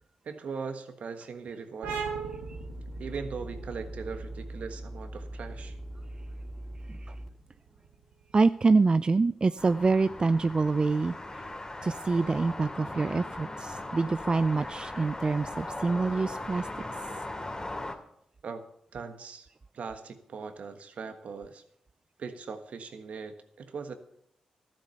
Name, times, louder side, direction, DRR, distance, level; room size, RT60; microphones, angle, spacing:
voice 1, 0.2-2.0 3.0-5.8 18.4-19.5 19.7-21.6 22.2-23.9, right 5 dB, 65° right, 7 dB, 1.4 m, -40 dB
sound 1, 1.8-9.1, right 5 dB, 90° right, 1.5 m, -41 dB
sound 2, 2.4-7.3, right 1 dB, 5° right, 3.1 m, -41 dB
voice 2, 8.3-11.4 11.8-16.7, right 3 dB, 35° right, 14 dB, 0.4 m, -26 dB
sound 3, 9.6-17.9, left 2 dB, 30° left, 2.7 m, -39 dB
13.0 x 7.6 x 6.9 m, 0.74 s
supercardioid pair, 40°, 2 cm